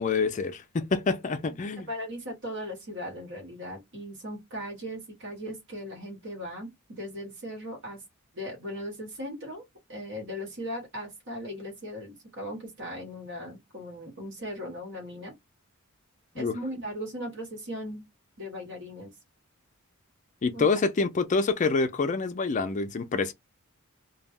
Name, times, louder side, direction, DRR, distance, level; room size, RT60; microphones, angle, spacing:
voice 1, 0.0-1.9 16.4-16.5 20.4-23.3, left 4 dB, 35° left, 0.4 m, -27 dB
voice 2, 1.9-8.0 8.3-9.6 9.9-15.3 16.3-18.0 18.4-19.1 20.5-20.7, equal, 55° right, 1.2 m, -38 dB
2.2 x 2.1 x 3.4 m
head